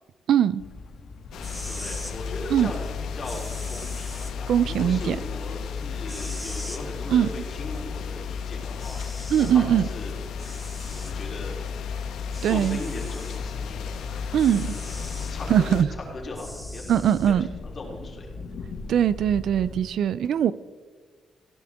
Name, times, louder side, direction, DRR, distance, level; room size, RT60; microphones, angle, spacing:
voice 1, 0.3-0.6 2.5-2.7 4.5-5.2 7.1-7.3 9.3-9.9 12.4-12.8 14.3-14.7 15.5-15.9 16.9-17.5 18.9-20.5, right 9 dB, 65° right, 17 dB, 0.5 m, -21 dB
sound 1, 0.6-19.8, left 3 dB, 55° left, 1.7 m, -42 dB
sound 2, 1.3-15.8, left 6 dB, 85° left, 1.6 m, -33 dB
sound 3, 1.4-2.2 3.2-4.3 6.1-6.8 8.3-8.4 8.8-9.6 10.4-11.2 12.3-13.4 14.4-15.3 16.4-17.3, equal, ahead, 1.6 m, -41 dB
voice 2, 1.6-2.8 3.1-9.0 9.4-10.1 10.9-11.5 12.4-15.6 15.9-16.8 17.6-18.3, left 2 dB, 35° left, -2 dB, 3.6 m, -38 dB
20.5 x 16.5 x 3.7 m, 1.5 s
wide cardioid pair, 170°, 0 cm